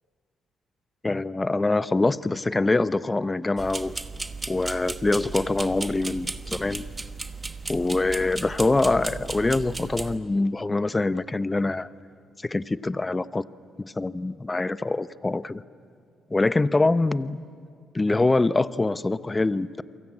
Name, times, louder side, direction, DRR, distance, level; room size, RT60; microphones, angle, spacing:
voice 1, 1.0-4.0 4.5-6.9 7.7-11.9 12.4-13.4 13.8-15.6 16.3-17.4 17.9-19.8, left 2 dB, 20° left, 15 dB, 0.7 m, -24 dB
sound 1, 3.6-10.2, right 3 dB, 20° right, 1.2 m, -35 dB
29.5 x 23.0 x 8.7 m, 2.2 s
cardioid pair, 90°, 0 cm